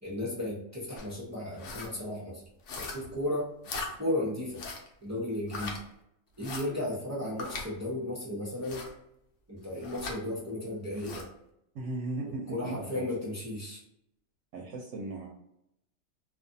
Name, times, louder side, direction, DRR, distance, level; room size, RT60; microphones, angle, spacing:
voice 1, 0.0-2.5 2.8-3.5 3.7-4.6 5.0-5.8 6.4-8.8 9.5-11.3 12.5-13.8, left 1 dB, 20° right, -6 dB, 0.4 m, -34 dB
sound 1, 1.0-1.1 1.5-1.9 2.7-3.2 3.6-3.9 4.5-4.9 5.5-5.8 6.4-6.7 7.4-7.7 8.6-8.9 9.8-10.2 10.9-11.3, left 3 dB, 65° left, 0.9 m, -39 dB
voice 2, 11.7-13.0 14.5-15.3, right 2 dB, 70° right, -1 dB, 0.9 m, -37 dB
2.4 x 2.4 x 2.6 m, 0.80 s
omnidirectional pair, 1.4 m